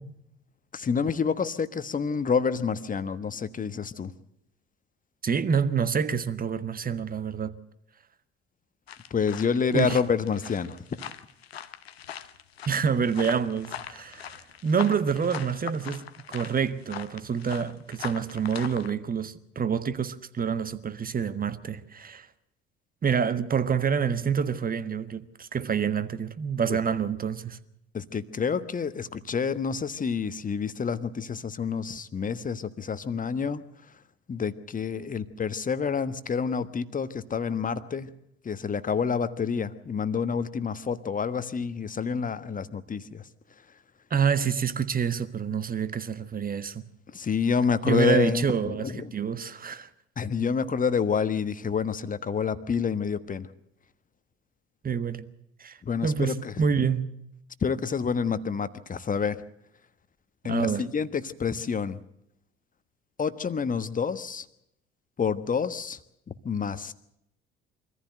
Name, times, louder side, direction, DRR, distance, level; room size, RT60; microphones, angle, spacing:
voice 1, 0.7-4.1 9.1-11.1 26.7-26.8 27.9-33.6 34.3-38.1 38.4-43.2 47.1-49.1 50.2-53.5 55.8-56.5 57.6-59.4 60.4-62.0 63.2-64.4 65.2-66.0 66.4-66.9, left 6 dB, 25° left, 1.3 m, -28 dB
voice 2, 5.2-7.5 9.7-10.0 12.7-14.3 14.6-22.3 23.0-27.6 44.1-46.8 47.8-49.9 54.8-55.2 55.6-57.1 60.5-60.9, right 6 dB, 30° right, 1.4 m, -27 dB
sound 1, 8.9-18.9, left 9 dB, 85° left, 0.9 m, -41 dB
24.0 x 14.5 x 7.9 m
figure-of-eight pair, 55°, 30 cm